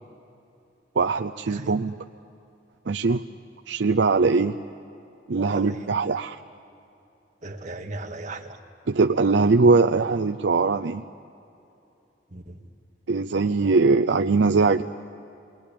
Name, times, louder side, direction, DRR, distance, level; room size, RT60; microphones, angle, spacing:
voice 1, 1.0-1.9 2.9-3.2 3.7-4.6 5.3-6.4 8.9-11.0 13.1-14.8, right 4 dB, 75° right, 6 dB, 0.6 m, -21 dB
voice 2, 5.5-5.9 7.4-8.6 12.3-12.6, right 2 dB, 40° right, 2 dB, 1.9 m, -37 dB
29.0 x 21.0 x 8.6 m, 2.7 s
head